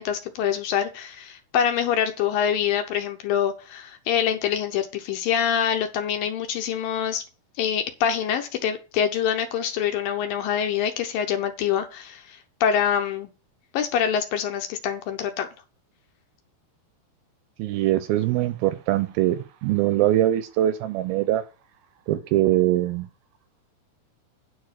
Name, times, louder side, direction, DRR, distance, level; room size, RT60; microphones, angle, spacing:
voice 1, 0.0-7.2 7.6-13.3 13.7-15.5, left 8 dB, 75° left, 5 dB, 2.3 m, -25 dB
voice 2, 17.6-21.4 22.1-23.1, right 14 dB, 80° right, 12 dB, 2.3 m, -22 dB
9.6 x 4.6 x 6.5 m, 0.32 s
omnidirectional pair, 4.7 m